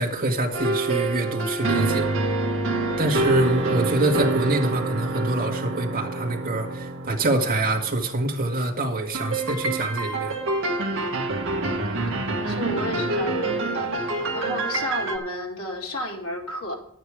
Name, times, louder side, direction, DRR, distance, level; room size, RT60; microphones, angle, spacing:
voice 1, 0.0-2.1 3.0-10.4, right 2 dB, 40° right, 1.9 m, -25 dB
sound 1, 0.5-8.3 9.1-15.2, right 2 dB, 60° right, 1.8 m, -27 dB
voice 2, 11.6-16.7, left 1 dB, 80° left, 3.1 m, -33 dB
11.5 x 9.6 x 4.9 m
head